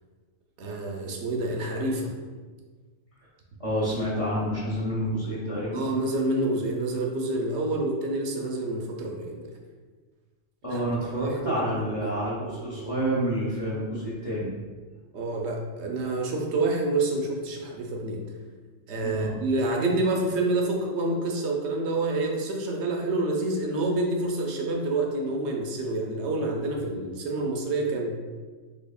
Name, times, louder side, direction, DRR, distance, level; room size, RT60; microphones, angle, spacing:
voice 1, 0.6-2.1 5.7-9.5 10.7-11.6 12.0-12.1 15.1-18.2 18.9-28.3, right 2 dB, 65° right, 1 dB, 0.8 m, -28 dB
voice 2, 3.6-5.8 10.6-14.5 19.0-19.3, equal, 30° left, -7 dB, 0.8 m, -28 dB
4.1 x 3.1 x 2.3 m, 1.4 s
omnidirectional pair, 1.3 m